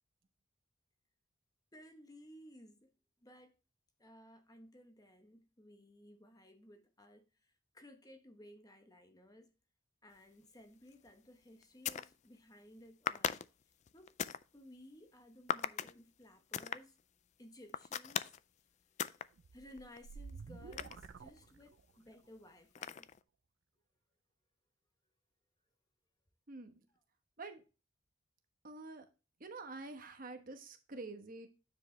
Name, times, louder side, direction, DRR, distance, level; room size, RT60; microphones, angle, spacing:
voice 1, 1.7-2.9 3.2-3.5 4.0-9.5 10.0-13.4 13.9-14.2 14.5-17.0 17.4-18.3 19.1-23.1 26.9-27.0, left 1 dB, 20° left, 1.0 m, -58 dB
sound 1, 10.9-11.1 11.6-12.1 13.0-14.4 15.5-15.9 16.5-16.8 17.7-18.4 19.0-19.3 19.7-21.5 22.7-23.2, left 8 dB, 35° left, 0.3 m, -38 dB
sound 2, 19.4-22.1, right 4 dB, 70° right, 0.4 m, -51 dB
voice 2, 26.5-26.8 27.4-27.6 28.6-29.0 29.4-31.5, right 3 dB, 45° right, 1.1 m, -47 dB
9.4 x 5.1 x 3.2 m
head